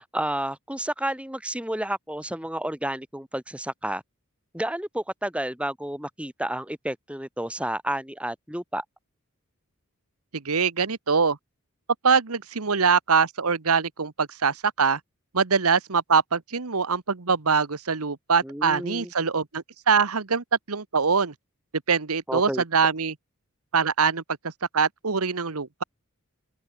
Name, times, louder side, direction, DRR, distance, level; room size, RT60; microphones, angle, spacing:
voice 1, 0.0-4.0 4.5-8.8 18.4-19.1 22.3-22.6, right 1 dB, 5° right, 3.2 m, -31 dB
voice 2, 10.4-11.4 12.0-15.0 15.3-21.3 21.9-23.1 23.7-24.2 24.7-25.8, right 5 dB, 90° right, 1.3 m, -23 dB
open air
head